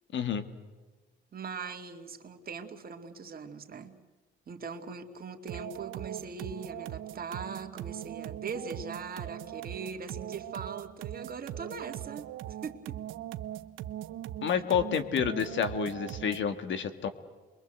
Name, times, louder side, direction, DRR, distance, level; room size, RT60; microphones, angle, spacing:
voice 1, 0.1-0.4 14.4-17.1, left 7 dB, 70° left, 10 dB, 2.1 m, -29 dB
voice 2, 1.3-4.0 4.5-12.3 12.6-13.0, right 5 dB, 50° right, 5 dB, 2.4 m, -40 dB
sound 1, 5.5-16.6, right 12 dB, 90° right, 0.9 m, -40 dB
28.0 x 23.0 x 8.0 m, 1.3 s
cardioid pair, 90°, 20 cm